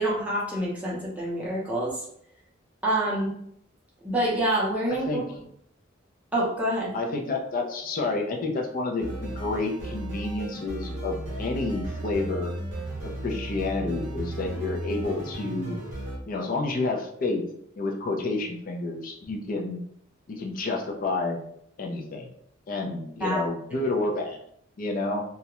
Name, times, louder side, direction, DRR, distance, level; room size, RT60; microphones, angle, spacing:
voice 1, 0.0-2.0 2.8-3.3 4.0-5.2 6.3-6.9 23.2-23.4 23.7-23.9, right 1 dB, 5° right, -6 dB, 0.5 m, -27 dB
voice 2, 6.9-12.5 13.0-15.8 16.2-17.4 17.8-19.8 20.3-21.4 21.8-22.3 22.7-24.4 24.8-25.2, left 3 dB, 40° left, 2 dB, 0.4 m, -29 dB
sound 1, 9.0-16.2, right 1 dB, 35° right, 0.8 m, -35 dB
2.3 x 2.1 x 2.9 m, 0.69 s
head